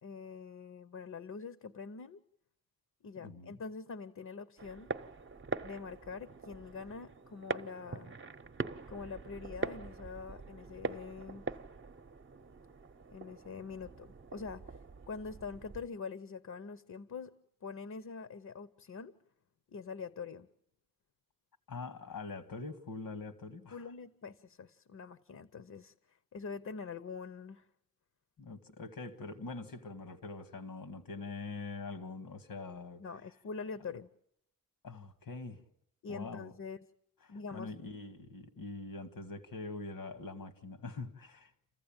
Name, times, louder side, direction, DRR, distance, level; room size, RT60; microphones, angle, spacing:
voice 1, 0.0-2.2 3.0-4.9 5.6-8.2 8.9-11.4 13.1-14.8 15.1-17.3 17.6-19.1 19.7-20.5 23.7-25.9 26.3-27.7 33.0-34.1 36.0-36.8 37.3-37.7, left 5 dB, 55° left, 0.9 m, -44 dB
voice 2, 3.2-3.6 21.7-23.9 28.4-33.1 34.8-35.6 36.1-36.5 37.2-41.5, left 3 dB, 90° left, 2.1 m, -44 dB
sound 1, 4.6-15.9, right 3 dB, 35° right, 0.8 m, -43 dB
28.5 x 15.0 x 8.9 m
wide cardioid pair, 85°, 33 cm